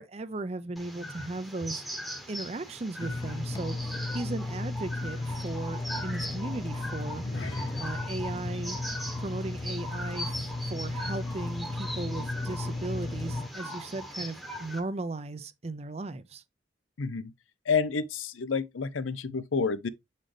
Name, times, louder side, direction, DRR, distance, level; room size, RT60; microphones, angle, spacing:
voice 1, 0.0-1.8 2.3-7.2 7.8-8.8 9.2-16.4, right 2 dB, 35° right, 0.5 m, -37 dB
sound 1, 0.8-14.8, equal, ahead, 1.0 m, -40 dB
sound 2, 3.0-13.5, left 2 dB, 20° left, 0.3 m, -35 dB
sound 3, 7.0-11.7 11.9-12.2 12.7-12.8, left 2 dB, 70° left, 1.8 m, -44 dB
voice 2, 17.0-17.3 17.7-19.9, left 5 dB, 90° left, 0.6 m, -29 dB
7.5 x 4.1 x 3.3 m
head